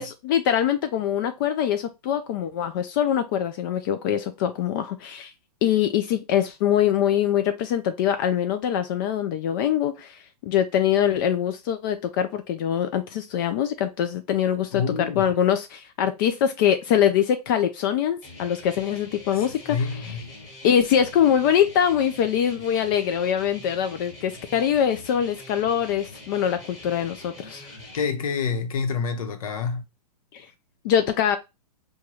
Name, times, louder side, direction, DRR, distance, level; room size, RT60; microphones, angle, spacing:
voice 1, 0.0-5.3 5.6-14.8 15.2-20.2 20.6-27.7 30.3-30.5 30.8-31.4, left 9 dB, 35° left, 0.4 m, -23 dB
voice 2, 14.7-15.3 19.3-20.3 27.9-29.8, left 5 dB, 60° left, 0.8 m, -28 dB
sound 1, 18.2-28.0, left 2 dB, 20° left, 1.5 m, -44 dB
4.6 x 2.2 x 2.9 m
hypercardioid pair, 125°, 20 cm